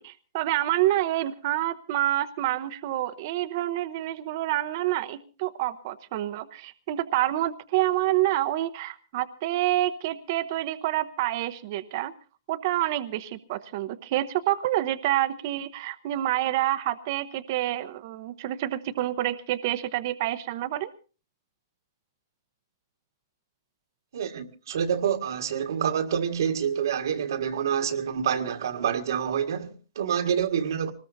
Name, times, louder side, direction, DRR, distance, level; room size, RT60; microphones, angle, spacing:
voice 1, 0.0-12.1 12.5-20.9, right 14 dB, 45° right, 0.8 m, -28 dB
voice 2, 24.1-30.9, right 8 dB, 75° right, 1.8 m, -27 dB
24.5 x 19.5 x 2.7 m
hypercardioid pair, 150°, 2 cm